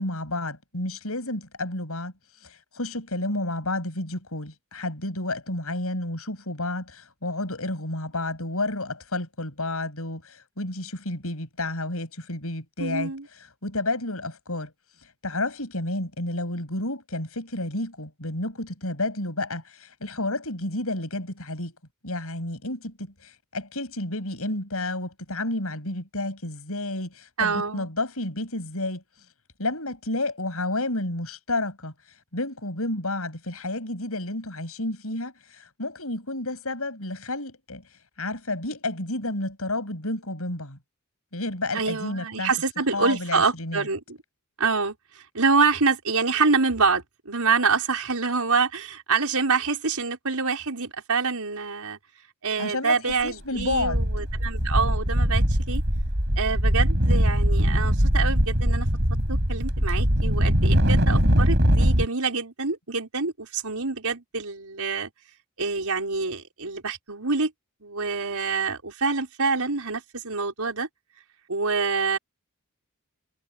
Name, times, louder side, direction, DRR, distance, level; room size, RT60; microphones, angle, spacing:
voice 1, 0.0-2.1 2.4-13.1 13.6-14.7 15.2-21.8 22.0-29.0 29.6-31.9 32.3-37.8 38.2-40.8 41.3-42.5 42.9-43.9 52.6-54.0, left 2 dB, 70° left, 7.6 m, -31 dB
voice 2, 12.8-13.2 27.4-27.9 41.7-44.2 44.6-52.0 52.4-55.8 56.4-58.9 59.3-65.1 65.6-67.5 67.8-70.9 71.5-72.2, right 4 dB, 80° right, 4.9 m, -26 dB
sound 1, 53.1-53.3 53.6-62.1, equal, 50° right, 7.8 m, -21 dB
head